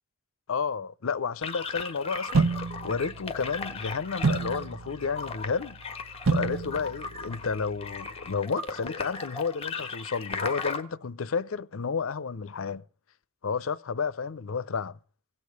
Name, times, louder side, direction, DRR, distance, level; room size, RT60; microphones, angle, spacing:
voice 1, 0.5-5.8 6.3-12.8 13.4-15.0, left 5 dB, 80° left, 0.6 m, -31 dB
sound 1, 1.4-10.8, left 4 dB, 30° left, 1.5 m, -37 dB
sound 2, 2.3-8.4, right 4 dB, 80° right, 0.7 m, -31 dB
17.0 x 6.8 x 9.4 m
head